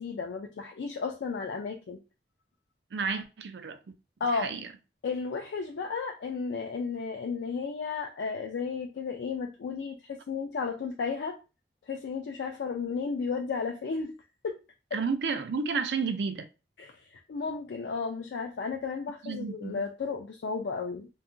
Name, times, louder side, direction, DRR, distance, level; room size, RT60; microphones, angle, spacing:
voice 1, 0.0-2.0 4.2-4.5 5.0-11.4 11.9-14.2 14.4-14.6 14.9-15.0 16.8-21.1, left 5 dB, 80° left, 0.4 m, -33 dB
voice 2, 2.9-3.8 4.3-4.7 14.9-16.5 19.2-19.8, right 5 dB, 75° right, 0.4 m, -31 dB
2.8 x 2.3 x 2.5 m
head